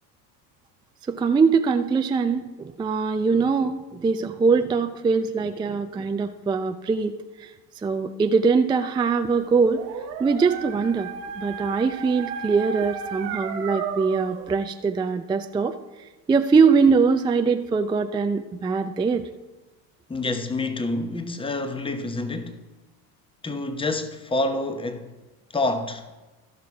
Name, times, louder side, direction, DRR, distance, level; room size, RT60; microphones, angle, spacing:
voice 1, 1.1-7.1 7.4-7.5 7.8-9.8 10.2-11.1 11.4-15.7 16.3-19.3, right 5 dB, 10° right, 0.4 m, -22 dB
Dog, 9.4-14.5, right 7 dB, 70° right, 1.3 m, -34 dB
voice 2, 20.1-22.6 23.4-25.1 25.5-26.1, left 2 dB, 10° left, 1.0 m, -27 dB
13.5 x 5.9 x 4.8 m
hypercardioid pair, 70°, 49 cm